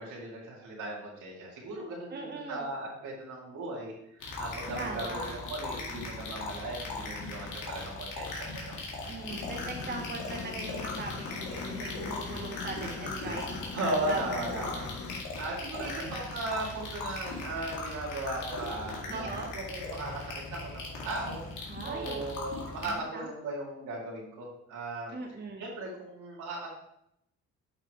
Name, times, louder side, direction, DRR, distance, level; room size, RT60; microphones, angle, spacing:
voice 1, 0.0-8.8 12.8-14.9 15.1-19.3 19.5-21.4 21.8-25.1 25.6-26.7, right 2 dB, 80° right, -4 dB, 2.8 m, -37 dB
voice 2, 2.1-2.7 4.7-5.4 9.1-13.8 14.1-14.8 15.7-16.2 19.1-19.5 21.7-22.2 22.9-23.3 25.1-25.7, right 3 dB, 35° right, 1 dB, 1.1 m, -40 dB
sound 1, 4.2-22.9, left 3 dB, 85° left, 2.0 m, -39 dB
sound 2, 9.3-15.2, left 6 dB, 50° left, 0.9 m, -42 dB
7.8 x 5.8 x 3.2 m, 0.79 s
cardioid pair, 90°, 30 cm